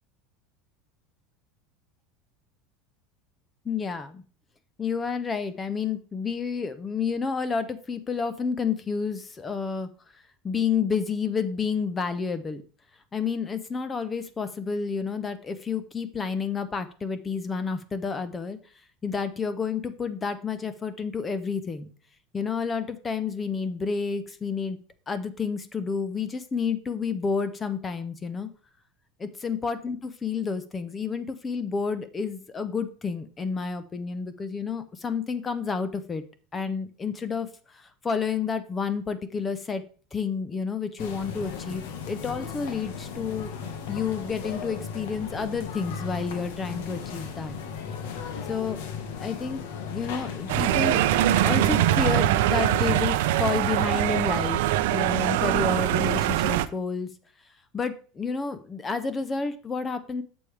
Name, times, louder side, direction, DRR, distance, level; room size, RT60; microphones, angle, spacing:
voice 1, 3.6-4.2 4.8-9.9 10.4-12.6 13.1-18.6 19.0-21.9 22.3-24.8 25.1-28.5 29.2-36.2 36.5-39.8 40.1-43.5 43.9-47.6 48.5-48.8 49.2-49.6 49.9-51.0 51.4-57.1 57.7-60.2, left 5 dB, 15° left, 12 dB, 0.6 m, -30 dB
sound 1, 41.0-52.0, left 6 dB, 80° left, 1.4 m, -36 dB
sound 2, 50.5-56.7, right 13 dB, 75° right, 0.5 m, -23 dB
8.3 x 7.0 x 3.3 m, 0.39 s
supercardioid pair, 165°, 0 cm